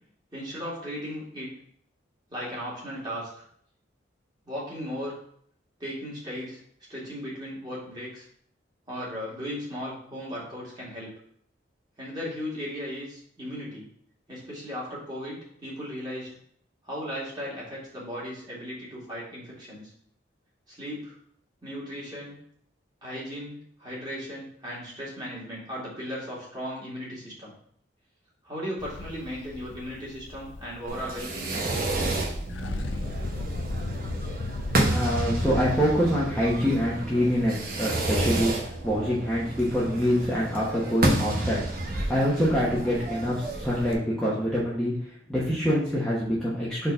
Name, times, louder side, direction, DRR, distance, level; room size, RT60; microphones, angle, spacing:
voice 1, 0.3-1.5 2.3-3.4 4.5-5.2 5.8-6.6 6.9-8.3 8.9-11.1 12.0-13.9 14.3-16.4 16.8-19.9 20.7-21.2 21.6-22.3 23.0-27.5 28.4-31.6, equal, 25° right, -6 dB, 2.3 m, -36 dB
sound 1, 28.8-31.7 32.0-32.1 32.4-36.2, left 2 dB, 80° left, 0.5 m, -35 dB
Fireworks, 30.9-43.9, right 1 dB, 50° right, 0.9 m, -30 dB
voice 2, 34.9-41.6 41.9-44.9 45.3-46.9, equal, 5° left, -8 dB, 1.0 m, -25 dB
4.5 x 4.1 x 5.4 m, 0.64 s
head